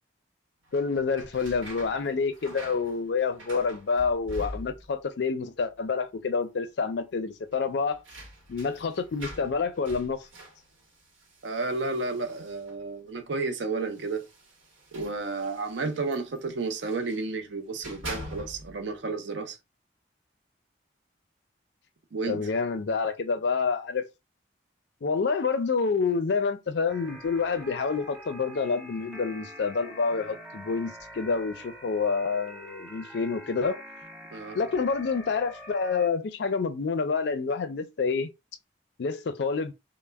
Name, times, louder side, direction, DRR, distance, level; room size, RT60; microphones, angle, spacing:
voice 1, 0.7-8.0 8.5-10.2 22.3-24.0 25.0-33.8 34.5-38.3 39.0-39.7, left 5 dB, 65° left, 0.4 m, -28 dB
sound 1, 0.7-5.1 5.3-6.0 6.3-6.4 7.5-12.9 13.8-17.3 17.7-18.9, equal, 90° right, 0.9 m, -45 dB
voice 2, 11.4-14.3 14.9-19.6 22.1-22.5 34.3-34.6, right 3 dB, 70° right, 0.5 m, -32 dB
sound 2, 26.9-36.1, equal, 5° right, 0.4 m, -45 dB
2.1 x 2.0 x 3.3 m
head